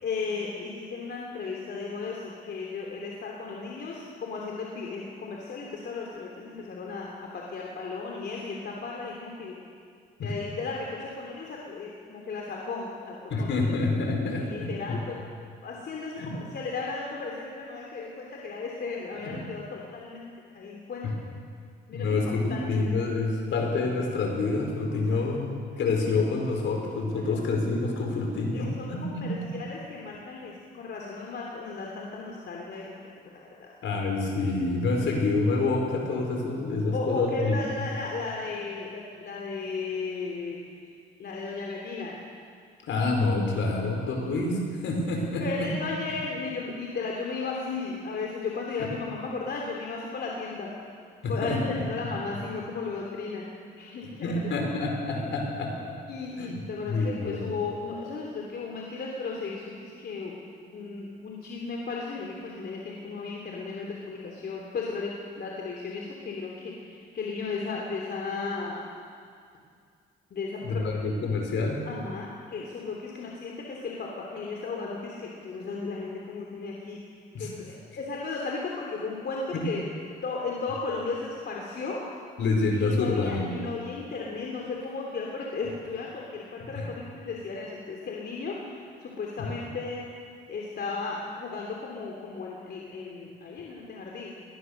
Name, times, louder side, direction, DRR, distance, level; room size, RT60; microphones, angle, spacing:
voice 1, 0.0-9.6 10.2-13.7 14.4-15.2 15.6-21.1 21.9-22.2 22.5-22.9 25.1-25.2 28.5-33.7 36.9-40.9 41.2-42.2 45.4-50.7 51.3-53.5 53.8-54.4 56.1-60.4 60.7-68.9 70.3-70.8 71.8-79.9 80.2-82.0 82.7-90.0 90.5-94.3, left 4 dB, 55° left, -2 dB, 3.2 m, -35 dB
voice 2, 13.3-15.0 16.2-16.3 19.1-19.4 21.9-25.5 25.8-29.5 33.8-37.5 42.8-45.7 51.2-51.8 54.2-55.9 56.4-56.5 56.8-57.4 70.6-71.8 77.3-77.5 79.5-79.6 82.4-83.5 86.6-86.7, left 3 dB, 70° left, 1 dB, 5.0 m, -27 dB
21.0 x 19.5 x 6.6 m, 2.2 s
cardioid pair, 90°, 20 cm